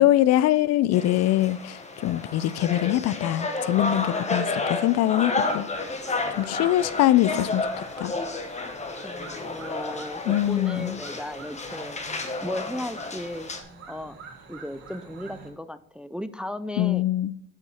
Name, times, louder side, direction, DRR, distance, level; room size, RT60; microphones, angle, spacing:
voice 1, 0.0-5.7 6.4-8.1 10.3-11.0 16.8-17.3, left 14 dB, 60° left, 18 dB, 0.5 m, -23 dB
sound 1, 0.9-13.6, left 3 dB, 25° left, 1.1 m, -31 dB
sound 2, 5.5-15.5, right 4 dB, 55° right, 2.3 m, -47 dB
voice 2, 9.0-12.0 12.4-13.5 13.9-14.2 14.5-17.1, left 1 dB, 5° right, 13 dB, 0.3 m, -36 dB
7.1 x 5.4 x 4.9 m, 0.76 s
supercardioid pair, 85°, 29 cm